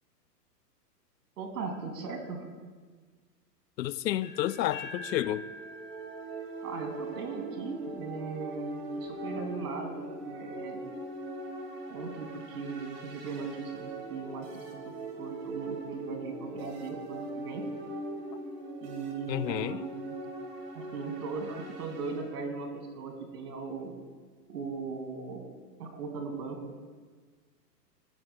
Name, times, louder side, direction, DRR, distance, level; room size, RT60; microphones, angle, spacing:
voice 1, 1.4-2.5 6.6-10.9 11.9-14.8 15.2-17.7 18.8-20.1 20.7-23.9 24.5-25.4 25.8-26.8, right 4 dB, 70° right, 2.4 m, -38 dB
voice 2, 3.8-5.5 19.3-19.8, left 13 dB, 85° left, 0.5 m, -30 dB
sound 1, 4.2-8.1, left 3 dB, 20° left, 2.7 m, -46 dB
sound 2, 5.0-22.2, right 2 dB, 35° right, 2.0 m, -41 dB
15.0 x 8.7 x 2.3 m
hypercardioid pair, 150°, 49 cm